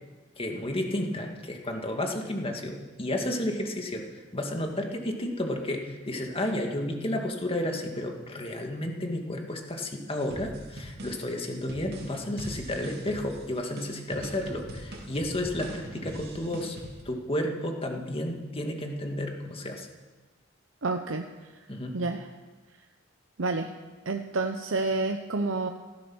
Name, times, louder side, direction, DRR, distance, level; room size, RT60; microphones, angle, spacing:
voice 1, 0.4-4.0 4.3-16.8 17.1-19.9 21.7-21.9, left 1 dB, 30° left, 3 dB, 2.1 m, -32 dB
sound 1, 10.2-17.0, right 1 dB, 55° right, 3.0 m, -42 dB
voice 2, 20.8-21.3 21.9-22.3 23.4-23.7 24.1-25.7, right 3 dB, 80° right, 6 dB, 0.8 m, -29 dB
16.0 x 13.5 x 6.2 m, 1.3 s
head